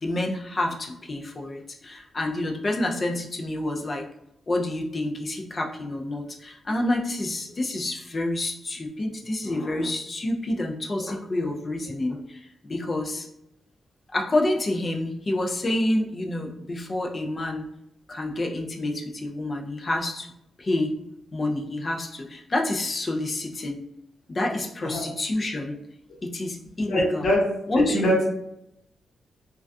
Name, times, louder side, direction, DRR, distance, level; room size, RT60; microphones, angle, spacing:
voice 1, 0.0-4.1 4.5-13.3 14.1-17.7 18.1-20.3 20.6-21.0 21.3-23.8 24.3-25.8 26.2-27.2 27.7-28.1, left 1 dB, 25° left, 2 dB, 0.3 m, -28 dB
voice 2, 26.9-27.4 27.9-28.2, left 1 dB, 80° left, -4 dB, 0.9 m, -22 dB
2.2 x 2.2 x 2.5 m, 0.80 s
wide cardioid pair, 155°, 0 cm